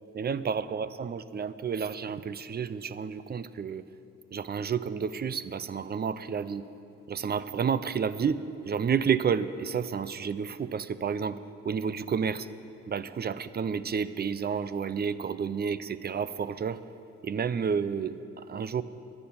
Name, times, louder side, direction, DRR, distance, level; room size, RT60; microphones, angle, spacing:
voice 1, 0.1-3.8 4.3-6.7 7.1-11.4 11.6-12.5 12.9-16.8 17.2-18.8, right 6 dB, 35° right, 15 dB, 0.5 m, -30 dB
11.5 x 10.0 x 8.6 m, 2.8 s
cardioid pair, 90°, 30 cm